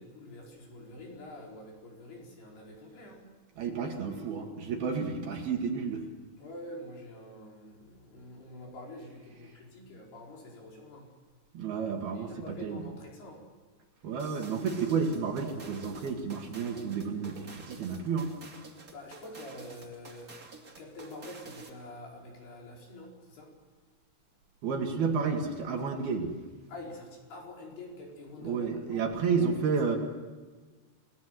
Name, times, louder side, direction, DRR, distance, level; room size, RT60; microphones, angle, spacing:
voice 1, 0.0-3.2 4.8-4.9 6.4-11.1 12.1-13.4 18.9-20.4 20.8-23.5 26.7-29.5, left 1 dB, 60° left, -1 dB, 6.5 m, -46 dB
voice 2, 3.6-6.1 11.5-12.9 14.0-18.3 24.6-26.3 28.4-30.0, right 5 dB, 60° right, 3 dB, 3.7 m, -31 dB
sound 1, 14.2-21.8, right 3 dB, 30° right, 1.7 m, -50 dB
29.5 x 18.5 x 7.7 m, 1.4 s
omnidirectional pair, 5.4 m